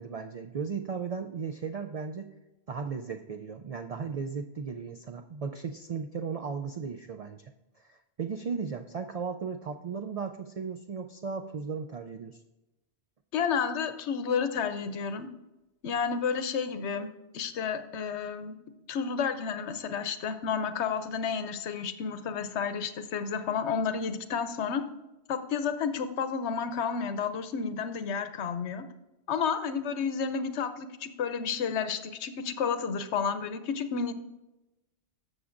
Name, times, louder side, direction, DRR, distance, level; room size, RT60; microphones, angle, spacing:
voice 1, 0.0-2.3 2.7-7.5 7.8-12.4, right 5 dB, 75° right, 6 dB, 0.3 m, -36 dB
voice 2, 13.3-15.3 15.8-17.1 17.3-18.6 18.9-24.8 25.3-28.8 29.3-34.1, left 6 dB, 80° left, 10 dB, 1.0 m, -31 dB
13.0 x 6.8 x 2.5 m, 1.0 s
omnidirectional pair, 1.2 m